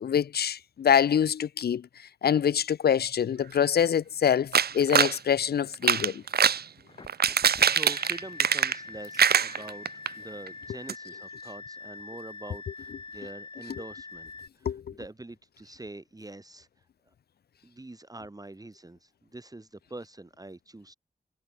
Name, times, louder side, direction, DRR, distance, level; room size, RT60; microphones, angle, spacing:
voice 1, 0.0-1.8 2.2-6.2 14.7-14.8, left 8 dB, 85° left, 0.4 m, -25 dB
sound 1, 4.5-5.2 5.7-6.6 7.1-8.9 9.2-10.1 10.5-10.6 10.9-11.0, right 7 dB, 80° right, 0.5 m, -23 dB
sound 2, 6.9-14.5, left 3 dB, 30° left, 0.7 m, -44 dB
voice 2, 7.1-9.9 10.1-14.3 14.6-14.7 15.0-16.7 17.6-20.9, right 2 dB, 25° right, 1.4 m, -45 dB
wide cardioid pair, 100°, 16 cm